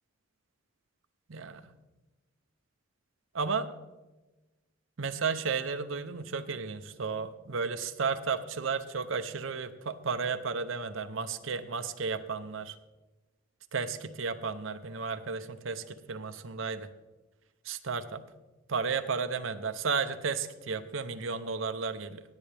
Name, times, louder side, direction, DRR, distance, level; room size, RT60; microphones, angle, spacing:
voice 1, 1.3-1.7 3.3-3.7 5.0-12.8 13.7-16.9 17.6-18.2 18.7-22.2, right 5 dB, 70° right, 10 dB, 0.7 m, -33 dB
18.0 x 8.3 x 3.4 m, 1.1 s
head